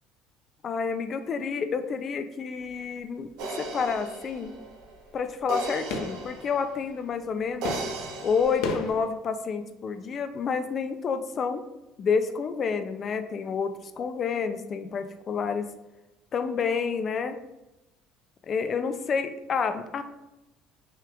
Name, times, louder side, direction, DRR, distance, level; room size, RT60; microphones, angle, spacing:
voice 1, 0.6-3.3 3.6-4.5 5.1-7.8 8.2-11.6 12.0-15.7 16.3-17.4 18.4-20.0, left 5 dB, 35° left, 9 dB, 0.4 m, -29 dB
sound 1, 2.6-3.0 3.3-9.1, left 3 dB, 75° left, 0.6 m, -37 dB
sound 2, 3.4-6.9 7.6-8.9, right 2 dB, 75° right, 0.7 m, -36 dB
5.8 x 2.4 x 3.4 m, 0.98 s
cardioid pair, 150°, 0 cm